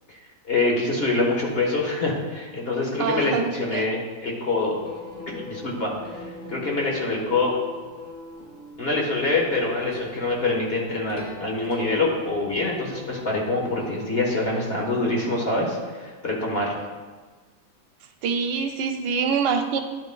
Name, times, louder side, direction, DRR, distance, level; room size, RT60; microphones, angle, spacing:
voice 1, 0.4-4.8 5.3-7.5 8.8-16.7, left 2 dB, 35° left, -1 dB, 1.4 m, -25 dB
voice 2, 3.0-3.9 18.2-19.8, right 6 dB, 80° right, 5 dB, 1.3 m, -25 dB
sound 1, 4.7-14.1, left 2 dB, 85° left, 2.1 m, -42 dB
11.0 x 9.0 x 2.3 m, 1.4 s
omnidirectional pair, 1.9 m